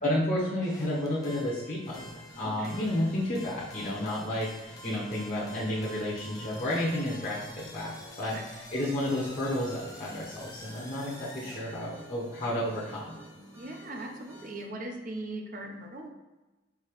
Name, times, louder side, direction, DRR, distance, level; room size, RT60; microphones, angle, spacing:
voice 1, 0.0-13.2, left 1 dB, 40° left, -7 dB, 0.8 m, -31 dB
sound 1, 0.5-11.6, left 1 dB, 15° left, 0.4 m, -49 dB
sound 2, 1.8-14.6, left 1 dB, 10° right, 0.9 m, -50 dB
voice 2, 2.4-2.8 8.2-8.5 13.6-16.1, right 2 dB, 40° right, 2 dB, 0.6 m, -39 dB
4.7 x 2.9 x 3.0 m, 1.1 s
head